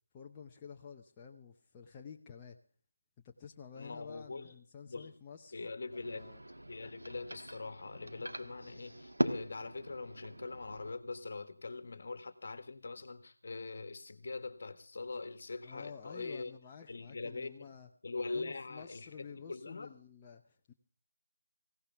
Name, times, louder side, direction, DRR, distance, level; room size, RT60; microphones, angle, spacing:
voice 1, 0.1-2.6 3.2-5.7 6.0-6.4 15.6-17.9 18.3-20.7, left 6 dB, 15° left, 0.8 m, -51 dB
voice 2, 3.7-4.5 4.8-5.1 5.5-6.3 6.7-16.5 16.9-17.7 18.0-19.9, left 3 dB, 50° left, 1.6 m, -43 dB
sound 1, 5.9-10.9, right 1 dB, 85° right, 1.4 m, -40 dB
18.5 x 16.5 x 3.6 m
figure-of-eight pair, 165°, 0 cm